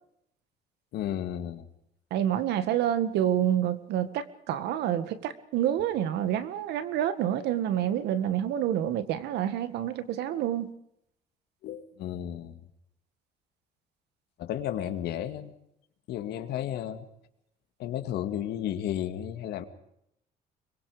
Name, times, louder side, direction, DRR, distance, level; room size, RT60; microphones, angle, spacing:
voice 1, 0.9-1.7 11.6-12.6 14.4-15.5 16.1-17.1 17.8-19.7, left 11 dB, 75° left, 2.1 m, -33 dB
voice 2, 2.1-10.7, right 10 dB, 80° right, 1.9 m, -28 dB
25.0 x 22.5 x 5.1 m
cardioid pair, 110°, 17 cm